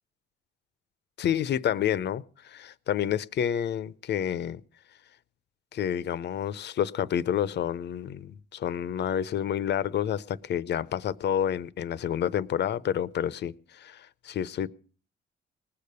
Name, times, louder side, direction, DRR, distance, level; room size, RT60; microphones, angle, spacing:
voice 1, 1.2-4.6 5.7-14.7, left 9 dB, 60° left, 0.6 m, -29 dB
19.5 x 6.8 x 6.8 m
cardioid pair, 90°, 20 cm